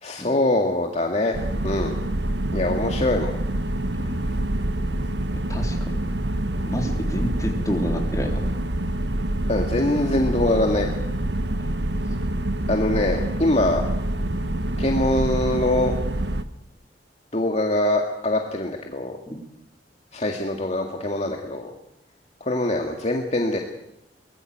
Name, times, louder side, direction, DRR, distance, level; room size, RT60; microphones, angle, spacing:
voice 1, 0.0-1.4 1.6-1.9 2.5-3.3 9.5-10.9 12.7-13.8 14.8-15.9 17.3-19.2 20.1-21.7 22.4-23.6, left 1 dB, 40° left, 2 dB, 2.1 m, -23 dB
sound 1, 1.3-16.4, right 1 dB, 85° right, 1.3 m, -26 dB
voice 2, 5.5-6.0 6.7-8.4, equal, 20° left, 2 dB, 3.7 m, -28 dB
23.5 x 19.0 x 7.8 m, 0.84 s
head